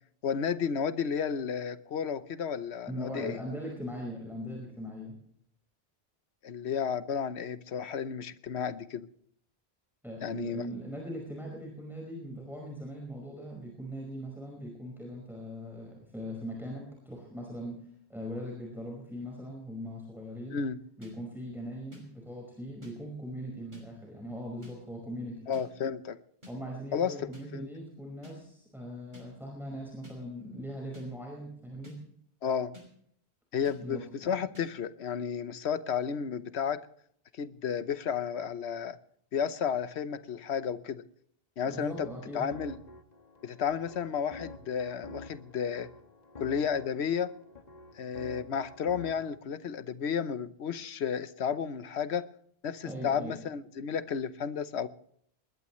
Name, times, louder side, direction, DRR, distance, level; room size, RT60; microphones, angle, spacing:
voice 1, 0.2-3.4 6.4-9.1 10.2-10.7 20.5-20.8 25.5-26.2 26.9-27.7 32.4-32.7 33.5-36.8 37.3-39.0 39.3-41.0 41.6-42.1 42.3-42.8 43.4-45.9 46.4-47.3 48.0-52.3 52.6-54.9, left 7 dB, 85° left, 1.1 m, -32 dB
voice 2, 2.9-5.1 10.0-17.8 18.1-20.6 21.0-25.4 26.5-32.0 33.8-34.4 41.7-42.4 52.8-53.4, equal, ahead, 5.1 m, -40 dB
sound 1, 21.0-21.1 21.9-22.0 22.8-22.9 23.7-23.8 24.6-24.7 25.5-25.6 26.4-26.5 27.3-27.4 28.2-28.4 29.1-29.3 30.0-30.2 30.9-31.1 31.8-32.0 32.7-32.9 33.6-33.8 34.5-34.7, left 1 dB, 45° right, 5.8 m, -49 dB
sound 2, 41.7-49.4, left 3 dB, 40° left, 1.4 m, -49 dB
21.0 x 20.5 x 3.1 m
omnidirectional pair, 1.1 m